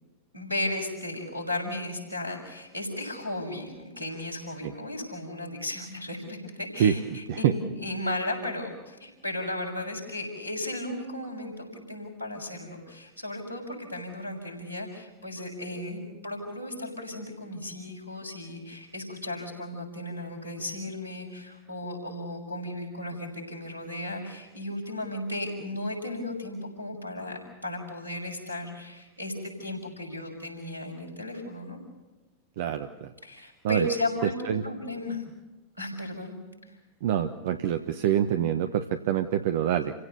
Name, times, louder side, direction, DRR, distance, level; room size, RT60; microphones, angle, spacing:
voice 1, 0.3-31.8 33.2-35.2 35.8-36.4, left 1 dB, 85° right, 3 dB, 6.3 m, -35 dB
voice 2, 32.6-33.1 33.6-33.9 34.4-34.6 37.0-39.9, right 9 dB, 55° right, 9 dB, 1.0 m, -26 dB
28.5 x 16.5 x 7.0 m, 1.1 s
figure-of-eight pair, 90°, 0 cm